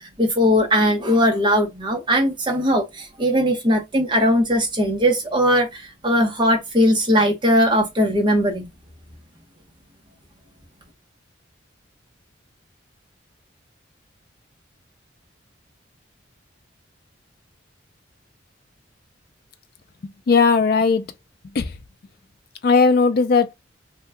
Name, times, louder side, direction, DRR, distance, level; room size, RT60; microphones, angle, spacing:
voice 1, 0.0-8.7, equal, 25° right, 0.9 m, -19 dB
voice 2, 20.0-21.0 21.5-21.7 22.6-23.5, left 4 dB, 50° left, 0.4 m, -17 dB
2.8 x 2.2 x 3.4 m
head